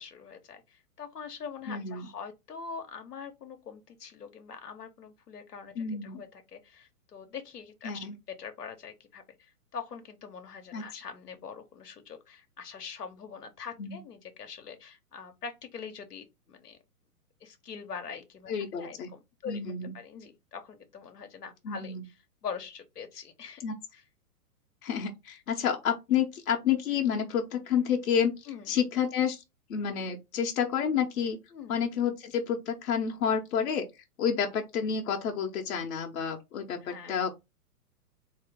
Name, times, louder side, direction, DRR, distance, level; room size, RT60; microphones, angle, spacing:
voice 1, 0.0-8.1 8.4-16.8 17.4-19.6 19.9-22.1 22.4-23.6 23.9-24.0 28.5-28.7 31.5-31.8 36.8-37.1, left 6 dB, 90° left, 1.0 m, -43 dB
voice 2, 1.7-2.1 5.8-6.2 7.8-8.1 10.7-10.8 13.8-14.0 18.5-19.1 19.5-19.9 21.6-22.0 23.6-23.7 24.8-29.4 29.7-31.4 31.7-33.9 34.2-37.3, left 7 dB, 65° left, 0.9 m, -29 dB
3.7 x 2.8 x 3.4 m
hypercardioid pair, 125°, 46 cm